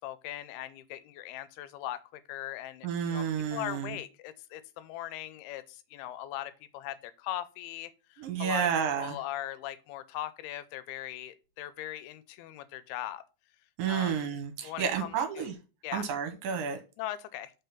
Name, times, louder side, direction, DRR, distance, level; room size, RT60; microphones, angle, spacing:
voice 1, 0.0-3.2 3.5-8.7 9.0-13.2 13.9-14.2 14.6-15.5 15.8-16.1 17.0-17.5, left 13 dB, 85° left, 2.6 m, -40 dB
voice 2, 2.8-4.0 8.2-9.2 13.8-15.5 15.9-16.8, right 7 dB, 70° right, 2.5 m, -31 dB
5.6 x 3.7 x 5.7 m
omnidirectional pair, 4.4 m